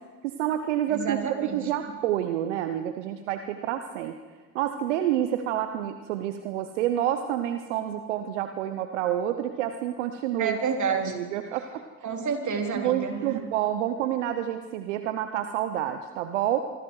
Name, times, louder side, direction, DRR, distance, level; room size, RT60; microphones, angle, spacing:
voice 1, 0.2-4.2 4.5-10.6 11.0-11.8 12.7-16.6, right 11 dB, 90° right, 8 dB, 0.8 m, -28 dB
voice 2, 0.9-1.7 10.4-11.2 12.0-13.4, right 5 dB, 55° right, 3 dB, 3.8 m, -29 dB
25.5 x 24.5 x 4.8 m, 1.3 s
hypercardioid pair, 40°, 35 cm